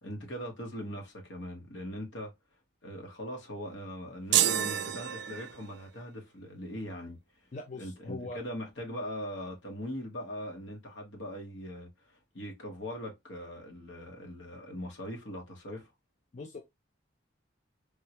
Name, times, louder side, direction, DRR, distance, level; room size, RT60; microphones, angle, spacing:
voice 1, 0.0-2.3 2.8-7.2 7.8-15.9, equal, 75° left, 1.2 m, -41 dB
sound 1, 4.3-5.9, right 11 dB, 60° right, 0.3 m, -28 dB
voice 2, 7.5-8.4 16.3-16.6, left 2 dB, 40° left, 0.4 m, -41 dB
3.6 x 2.2 x 2.9 m
head